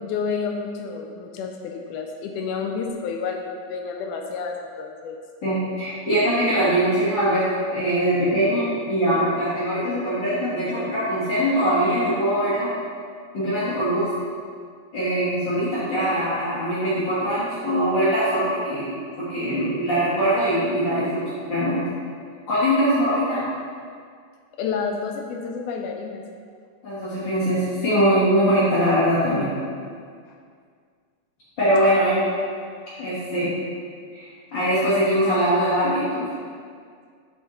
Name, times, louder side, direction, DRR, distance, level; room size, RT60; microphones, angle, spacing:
voice 1, 0.0-5.2 24.6-26.2 29.8-29.9 31.8-31.9, left 5 dB, 85° left, 3 dB, 2.0 m, -30 dB
voice 2, 5.4-12.7 13.3-14.1 14.9-21.8 22.5-23.5 26.8-29.5 31.6-32.2 33.0-33.5 34.1-36.3, equal, 45° left, -12 dB, 1.7 m, -22 dB
8.2 x 4.4 x 3.7 m, 2.1 s
omnidirectional pair, 3.5 m